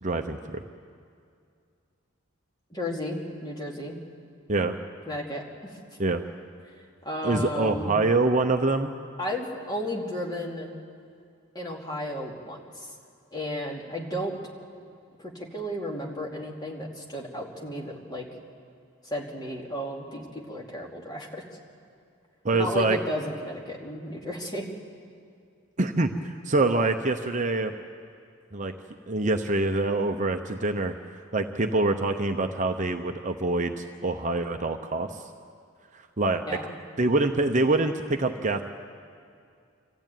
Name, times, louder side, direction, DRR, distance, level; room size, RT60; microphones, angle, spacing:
voice 1, 0.0-0.6 4.5-4.8 6.0-6.2 7.2-8.9 22.4-23.0 25.8-27.7 28.5-28.7 29.1-30.9 31.3-35.2 36.2-36.4 37.0-38.6, right 2 dB, 35° right, 5 dB, 0.8 m, -25 dB
voice 2, 2.7-4.0 5.1-5.8 6.7-6.8 7.0-7.9 9.2-10.7 11.5-13.0 13.3-14.4 15.2-18.3 19.0-21.4 22.5-24.7 36.4-36.8, equal, 20° left, -2 dB, 2.6 m, -33 dB
25.5 x 14.5 x 9.1 m, 2.4 s
head